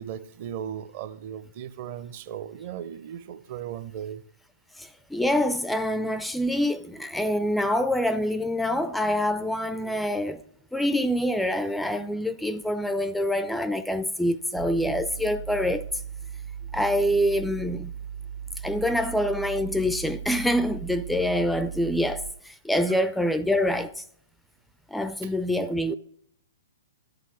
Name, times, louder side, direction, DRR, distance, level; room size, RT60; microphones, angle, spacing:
voice 1, 0.0-4.2 19.0-19.1, right 9 dB, 45° right, 0.7 m, -37 dB
voice 2, 4.8-10.4 10.7-15.8 16.7-17.9 18.6-24.0 24.9-25.9, equal, ahead, 0.4 m, -26 dB
sound 1, 14.5-22.3, right 8 dB, 80° right, 1.6 m, -38 dB
11.0 x 6.8 x 6.2 m
figure-of-eight pair, 115°, 0 cm